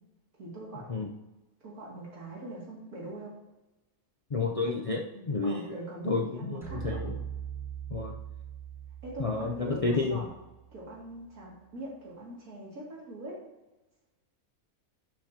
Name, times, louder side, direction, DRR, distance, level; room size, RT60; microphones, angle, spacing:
voice 1, 0.4-0.9 1.6-3.3 5.4-7.0 9.0-10.3 10.7-13.4, right 1 dB, 90° right, -4 dB, 3.0 m, -42 dB
voice 2, 4.3-5.8 6.1-7.2 7.9-8.1 9.2-10.2, left 3 dB, 50° left, 0 dB, 0.4 m, -30 dB
sound 1, 6.6-10.9, right 8 dB, ahead, 1.6 m, -41 dB
11.5 x 6.3 x 2.9 m, 1.0 s
omnidirectional pair, 1.5 m